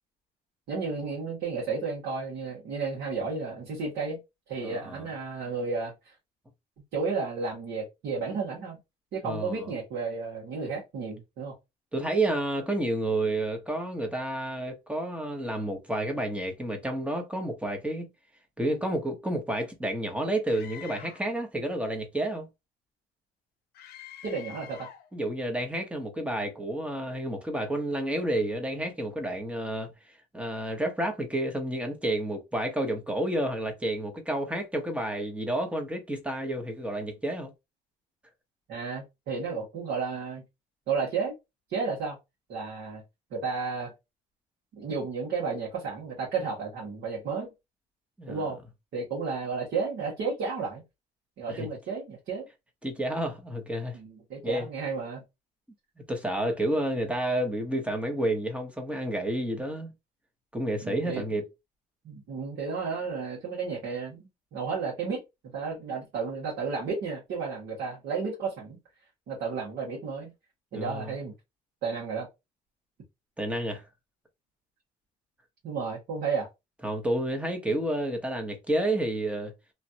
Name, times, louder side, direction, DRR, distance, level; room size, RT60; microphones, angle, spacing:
voice 1, 0.7-4.2 4.5-6.1 6.9-8.8 9.1-11.5 24.2-24.9 38.7-40.4 40.9-41.3 41.7-42.2 42.5-43.0 43.3-43.9 44.7-47.5 48.3-48.6 48.9-50.8 51.4-52.5 53.9-55.2 60.8-61.2 62.0-65.2 65.5-68.8 69.3-70.3 70.7-71.3 71.8-72.3 75.6-76.5, right 4 dB, 70° right, 1.6 m, -32 dB
voice 2, 4.6-5.0 9.2-9.7 11.9-18.1 18.6-22.5 25.1-29.9 30.3-37.5 48.2-48.4 51.5-51.7 52.8-54.0 54.4-54.7 56.1-59.9 60.5-61.4 70.7-71.1 73.4-73.8 76.8-79.5, right 1 dB, 5° right, 0.9 m, -30 dB
Screaming, 20.5-21.3 23.7-25.1, left 10 dB, 65° left, 0.6 m, -46 dB
3.1 x 2.4 x 2.7 m
cardioid pair, 110°, 17 cm